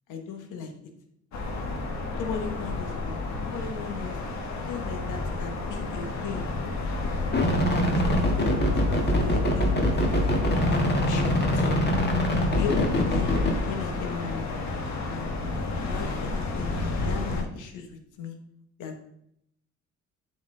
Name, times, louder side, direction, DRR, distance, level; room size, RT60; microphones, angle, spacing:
voice 1, 0.1-0.7 2.1-4.2 4.7-6.5 7.4-10.0 10.6-11.8 12.4-13.3 13.6-14.5 15.0-15.3 15.7-16.8 17.0-18.4 18.8-19.0, left 6 dB, 90° left, 5 dB, 1.2 m, -37 dB
sound 1, 1.3-17.4, left 3 dB, 65° left, 1.4 m, -32 dB
sound 2, 7.3-13.5, left 1 dB, 35° left, 1.5 m, -24 dB
8.0 x 4.4 x 3.8 m, 0.74 s
cardioid pair, 90°, 30 cm